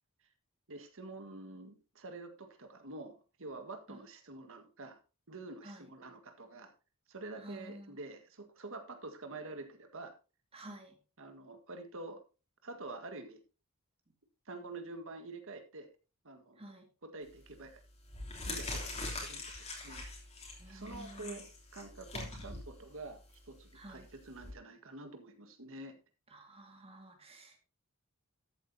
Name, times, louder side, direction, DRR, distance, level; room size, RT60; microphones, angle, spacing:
voice 1, 0.7-5.0 5.3-6.7 7.1-10.1 11.2-12.2 12.6-13.4 14.4-15.9 16.2-16.6 17.0-17.8 18.4-20.1 20.7-21.5 21.7-26.0, right 2 dB, 65° right, 7 dB, 1.7 m, -47 dB
voice 2, 7.4-8.0 10.5-10.9 16.6-16.9 20.6-21.4 23.7-24.1 26.3-27.6, right 1 dB, 25° right, 4 dB, 2.1 m, -50 dB
sound 1, 17.2-17.5 18.0-24.5, left 2 dB, 30° left, 3.1 m, -43 dB
13.0 x 8.5 x 2.8 m, 0.31 s
head